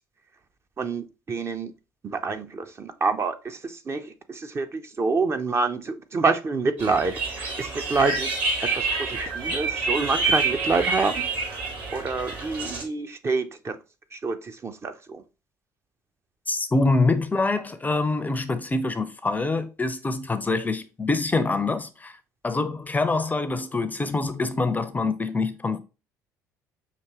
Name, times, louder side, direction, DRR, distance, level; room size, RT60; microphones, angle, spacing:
voice 1, 0.8-1.7 2.0-7.1 7.6-8.3 8.7-8.9 9.3-11.3 11.9-13.8 14.1-15.2, right 4 dB, 30° right, 0.6 m, -27 dB
sound 1, 6.8-12.8, right 3 dB, 55° right, 1.7 m, -28 dB
voice 2, 16.5-22.1 22.4-25.8, left 3 dB, 15° left, 0.5 m, -25 dB
5.9 x 2.8 x 2.9 m
figure-of-eight pair, 55°, 10 cm